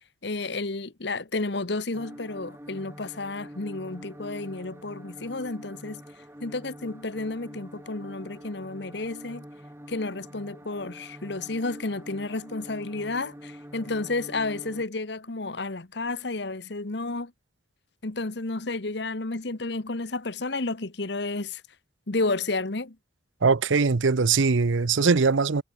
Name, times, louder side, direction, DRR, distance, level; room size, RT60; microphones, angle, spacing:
voice 1, 0.2-6.0 6.4-9.4 9.9-17.3 18.0-21.6 22.1-22.9, left 3 dB, 60° left, 1.2 m, -31 dB
sound 1, 1.9-14.8, equal, 15° right, 3.2 m, -45 dB
voice 2, 23.4-25.6, right 4 dB, 80° right, 0.7 m, -21 dB
head